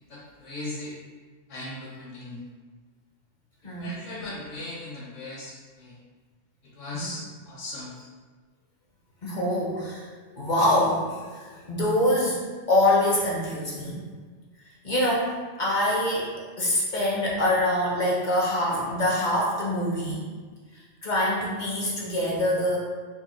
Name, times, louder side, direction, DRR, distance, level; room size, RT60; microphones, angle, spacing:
voice 1, 0.1-1.0 1.5-2.4 3.7-5.9 6.6-7.9, left 2 dB, 70° left, -5 dB, 1.3 m, -38 dB
voice 2, 3.6-3.9 9.2-10.1 10.4-12.4 12.7-14.0 14.8-20.2 21.0-22.8, left 1 dB, 45° left, -4 dB, 0.7 m, -25 dB
3.9 x 2.2 x 3.7 m, 1.4 s
omnidirectional pair, 1.3 m